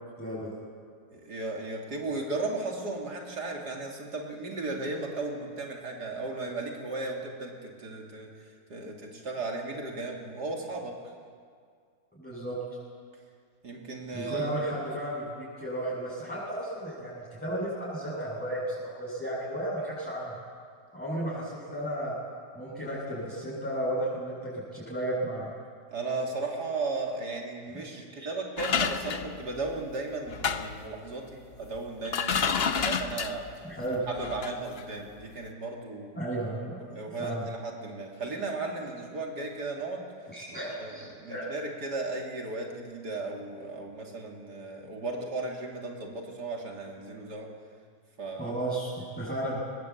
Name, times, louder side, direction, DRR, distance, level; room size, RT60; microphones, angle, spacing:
voice 1, 0.2-0.6 12.2-12.6 14.1-20.3 20.9-22.1 22.5-25.5 27.7-28.3 33.6-34.0 36.1-36.8 37.2-37.5 40.3-41.4 48.4-49.6, right 1 dB, 5° left, -10 dB, 7.4 m, -34 dB
voice 2, 1.1-11.0 13.6-14.5 25.9-33.7 34.1-36.2 36.9-40.1 40.6-47.5 48.2-48.5, right 3 dB, 70° right, 0 dB, 3.3 m, -35 dB
sound 1, 28.6-29.8 30.3-30.9 31.7-31.8 32.0-33.5 34.1-34.5 34.8-34.9, left 6 dB, 45° left, 0.9 m, -29 dB
22.0 x 20.5 x 8.5 m, 2.1 s
omnidirectional pair, 1.8 m